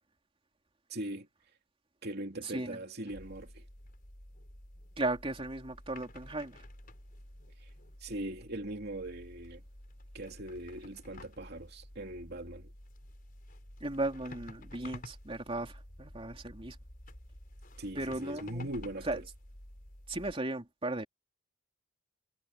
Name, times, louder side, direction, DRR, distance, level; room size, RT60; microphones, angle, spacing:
voice 1, 0.9-1.3 2.0-3.7 7.6-7.7 8.0-9.6 10.1-12.7 17.8-19.2, right 1 dB, 55° right, 3.0 m, -40 dB
voice 2, 2.4-2.8 5.0-6.6 13.8-16.8 17.9-18.7 19.0-19.2 20.1-21.0, right 2 dB, 30° right, 3.2 m, -36 dB
sound 1, 3.1-20.3, left 1 dB, 45° left, 4.9 m, -51 dB
head